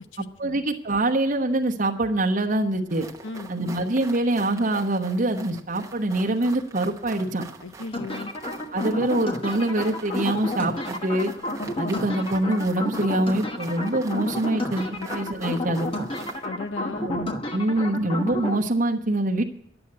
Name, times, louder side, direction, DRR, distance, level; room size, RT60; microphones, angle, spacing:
voice 1, 0.2-3.1 3.5-7.4 8.7-11.3 11.8-14.8 15.1-15.9 17.0-19.4, right 1 dB, 45° right, 2 dB, 1.0 m, -24 dB
sound 1, 2.9-16.5, right 3 dB, 15° right, 1.0 m, -43 dB
voice 2, 7.6-8.3 15.0-15.1 16.4-17.1, left 4 dB, 85° left, 10 dB, 0.9 m, -35 dB
sound 2, 7.9-18.6, left 1 dB, 30° left, 1.2 m, -31 dB
11.0 x 8.0 x 8.5 m, 0.69 s
head